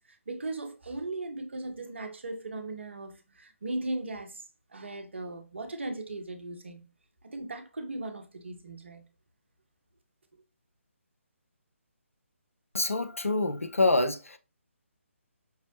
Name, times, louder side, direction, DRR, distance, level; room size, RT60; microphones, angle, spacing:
voice 1, 0.1-4.4 4.7-6.8 7.2-9.0, right 2 dB, 60° right, 0.7 m, -37 dB
voice 2, 12.7-14.4, left 2 dB, 80° left, 0.5 m, -26 dB
5.4 x 2.0 x 2.7 m
figure-of-eight pair, 145°, 7 cm